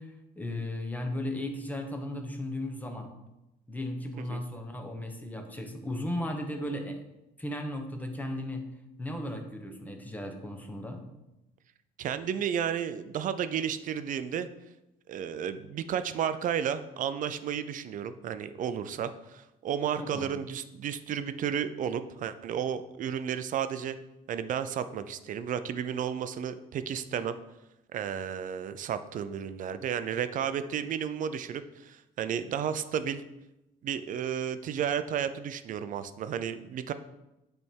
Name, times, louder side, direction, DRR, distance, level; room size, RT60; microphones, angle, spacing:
voice 1, 0.0-3.1 3.7-7.0 7.4-8.7 9.0-11.0 19.9-20.3, left 1 dB, 10° left, 4 dB, 1.0 m, -36 dB
voice 2, 12.0-14.5 15.1-24.0 24.3-27.4 27.9-33.2 33.8-36.9, right 8 dB, 50° right, 12 dB, 0.5 m, -32 dB
8.4 x 3.5 x 4.5 m, 0.96 s
cardioid pair, 110°, 17 cm